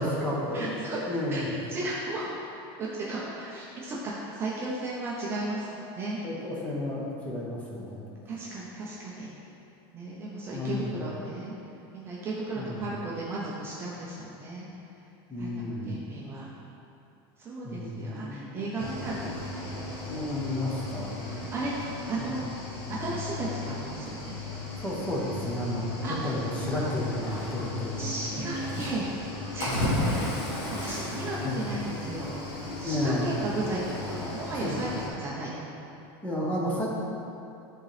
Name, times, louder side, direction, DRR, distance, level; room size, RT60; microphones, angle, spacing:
voice 1, 0.0-0.8 1.1-1.5 6.2-8.1 10.5-10.9 12.6-12.8 15.3-16.1 17.6-18.9 20.1-21.4 22.1-22.3 24.8-25.9 26.2-28.2 31.4-31.6 32.8-33.3 34.6-34.8 36.2-36.9, left 1 dB, 10° left, -4 dB, 0.8 m, -32 dB
voice 2, 0.5-1.0 1.3-1.4 1.7-2.3 2.8-6.2 8.3-9.3 9.9-11.5 11.9-14.7 15.4-16.5 17.4-19.8 21.5-21.7 22.1-22.5 23.0-24.4 26.0-26.2 27.9-29.1 29.5-30.4 30.8-32.4 32.8-33.8 34.1-35.5, right 2 dB, 20° right, -6 dB, 0.5 m, -35 dB
Cricket / Waves surf, 18.8-35.1, left 2 dB, 85° left, 1.5 m, -35 dB
9.8 x 3.8 x 3.3 m, 2.8 s
supercardioid pair, 175°, 13 cm